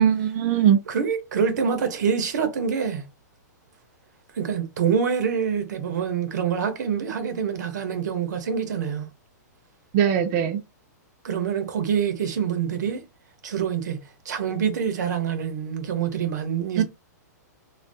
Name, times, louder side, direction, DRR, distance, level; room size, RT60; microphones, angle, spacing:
voice 1, 0.0-0.8 9.9-10.6 16.8-16.9, right 9 dB, 40° right, 0.5 m, -20 dB
voice 2, 0.9-3.1 4.4-9.1 11.2-13.0 13.4-14.0 14.2-16.8, right 7 dB, 75° right, 0.9 m, -26 dB
2.6 x 2.3 x 3.4 m
hypercardioid pair, 135°, 10 cm